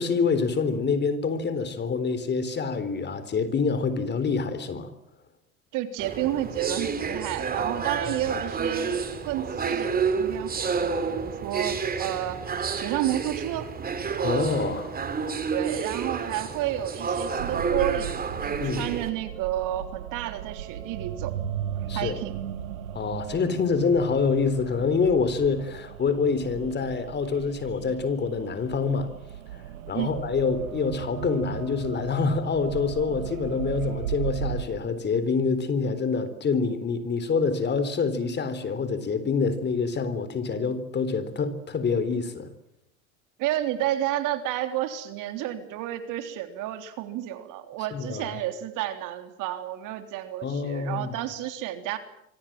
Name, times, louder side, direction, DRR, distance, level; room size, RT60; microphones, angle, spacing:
voice 1, 0.0-4.9 14.2-15.0 18.6-18.9 21.9-22.2 22.9-29.1 29.9-42.5 47.9-48.3 50.4-51.1, left 5 dB, 25° left, 13 dB, 3.8 m, -26 dB
voice 2, 5.7-12.4 12.8-13.7 15.5-21.4 21.9-22.4 29.9-30.1 43.4-52.0, right 13 dB, 50° right, 8 dB, 3.5 m, -31 dB
sound 1, 6.0-19.1, right 5 dB, 20° right, 3.6 m, -29 dB
sound 2, 17.4-34.6, right 10 dB, 80° right, 2.2 m, -36 dB
26.0 x 25.0 x 7.6 m, 0.79 s
hypercardioid pair, 100°, 41 cm